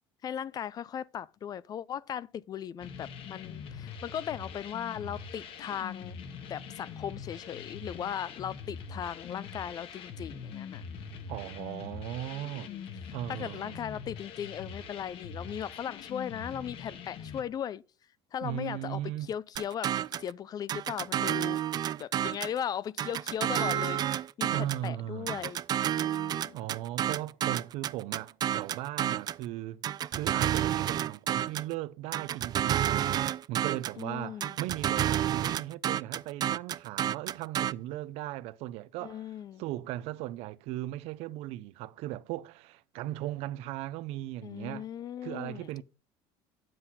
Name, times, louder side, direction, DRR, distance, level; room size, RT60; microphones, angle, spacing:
voice 1, 0.2-6.2 6.5-10.8 11.9-12.0 12.3-12.9 13.3-17.8 18.3-19.0 19.3-19.9 20.2-21.6 22.0-25.6 25.9-26.6 34.0-34.6 39.0-39.6 44.4-45.8, left 9 dB, 35° left, 0.4 m, -38 dB
sound 1, 2.8-17.4, left 6 dB, 55° left, 1.6 m, -43 dB
voice 2, 11.3-12.7 13.1-13.8 18.4-19.3 24.5-25.4 26.5-29.8 30.1-39.3 39.6-44.9 45.2-45.8, right 14 dB, 70° right, 0.6 m, -37 dB
sound 2, 19.6-20.3 20.7-22.6 23.0-24.9 25.3-29.4 29.8-31.7 32.1-34.0 34.4-37.7, right 11 dB, 40° right, 0.4 m, -30 dB
9.7 x 7.7 x 4.2 m
cardioid pair, 120°, 11 cm